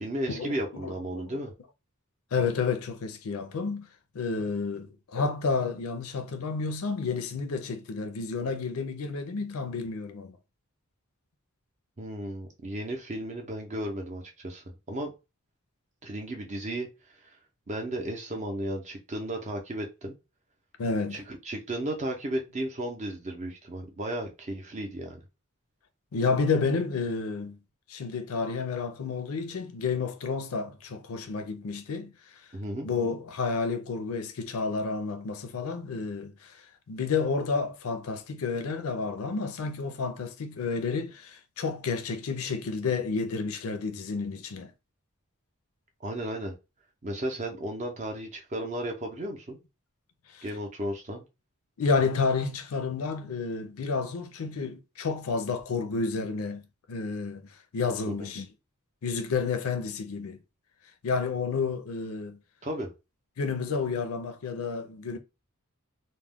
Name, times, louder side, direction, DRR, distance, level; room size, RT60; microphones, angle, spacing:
voice 1, 0.0-1.5 12.0-15.1 16.0-16.9 17.7-20.1 21.1-25.2 32.5-32.9 46.0-46.6 47.0-49.6 50.4-51.2 58.1-58.3 62.6-62.9, right 1 dB, 30° right, 0.6 m, -34 dB
voice 2, 0.8-1.3 2.3-3.9 4.1-10.4 20.8-21.2 26.1-27.6 27.9-32.1 32.8-36.6 36.9-44.7 50.3-50.4 51.8-56.6 56.9-57.4 57.7-58.5 59.0-60.4 61.0-62.4 63.4-65.2, left 4 dB, 75° left, 0.5 m, -30 dB
2.3 x 2.1 x 3.4 m
head